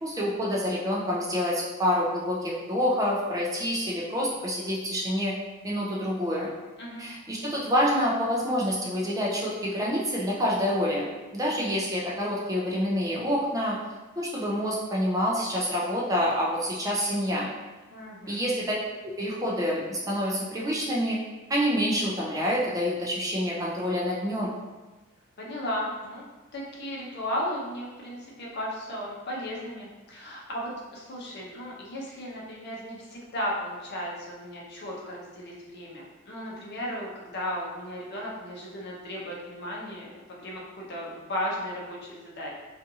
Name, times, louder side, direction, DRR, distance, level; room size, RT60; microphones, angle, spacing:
voice 1, 0.0-5.3 5.6-6.5 7.0-11.1 11.3-13.8 14.2-17.5 18.3-18.7 19.0-21.2 21.5-24.5, equal, 15° right, -4 dB, 0.4 m, -27 dB
voice 2, 17.9-18.4 25.4-26.3 26.5-42.6, equal, 55° left, -3 dB, 0.6 m, -35 dB
2.6 x 2.4 x 2.7 m, 1.2 s
head